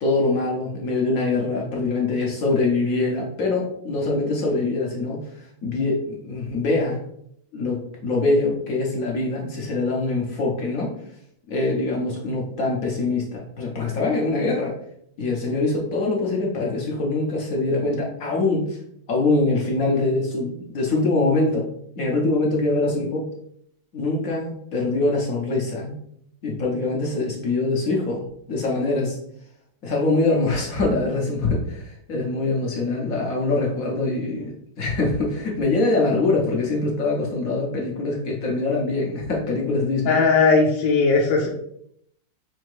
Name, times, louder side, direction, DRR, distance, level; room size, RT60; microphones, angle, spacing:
voice 1, 0.0-7.0 7.5-10.9 11.5-14.7 15.2-18.8 19.1-21.7 22.0-23.3 23.9-25.9 26.4-28.2 28.5-29.2 29.8-40.3, left 3 dB, 60° left, -2 dB, 1.1 m, -23 dB
voice 2, 40.1-41.5, left 4 dB, 80° left, -2 dB, 1.4 m, -18 dB
4.4 x 2.8 x 3.1 m, 0.71 s
omnidirectional pair, 2.0 m